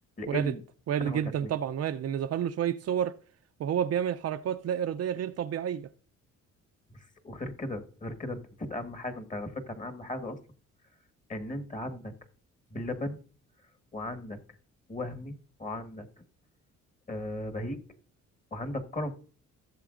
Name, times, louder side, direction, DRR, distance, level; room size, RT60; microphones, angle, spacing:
voice 1, 0.2-0.6 1.0-1.5 6.9-10.4 11.3-12.1 12.7-13.2 13.9-14.6 14.9-16.1 17.1-17.8 18.5-19.1, left 1 dB, 25° left, 1.4 m, -36 dB
voice 2, 0.9-3.1 3.6-5.9, right 9 dB, 55° right, 0.5 m, -30 dB
15.5 x 7.0 x 2.5 m
cardioid pair, 90°, 30 cm